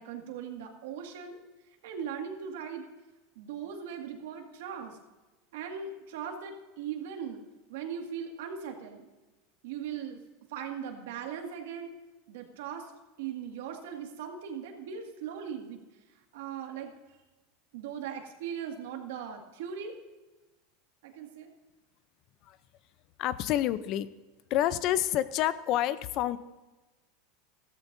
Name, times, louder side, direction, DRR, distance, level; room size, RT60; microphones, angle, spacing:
voice 1, 0.0-1.4 1.8-2.9 3.4-5.0 5.5-7.4 7.7-9.1 9.6-10.2 10.5-11.9 12.3-12.9 13.2-15.8 16.3-16.9 17.7-19.9 21.0-21.5, right 7 dB, 80° right, 3 dB, 2.0 m, -39 dB
voice 2, 23.2-24.1 24.5-26.4, left 12 dB, 45° left, 15 dB, 0.6 m, -28 dB
15.0 x 13.5 x 2.7 m, 1.2 s
supercardioid pair, 135°, 0 cm